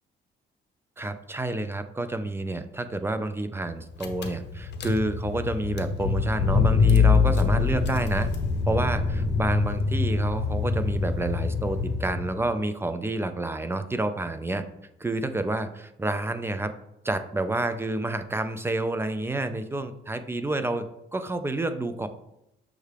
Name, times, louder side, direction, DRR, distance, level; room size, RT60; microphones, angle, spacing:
voice 1, 1.0-8.3 8.7-14.6 15.0-16.7 17.0-20.9 21.1-22.1, right 2 dB, 10° right, 10 dB, 0.3 m, -29 dB
Car / Engine, 3.7-3.8 4.0-12.4, left 5 dB, 60° left, 0.6 m, -24 dB
6.3 x 2.4 x 3.3 m, 0.83 s
cardioid pair, 90°, 20 cm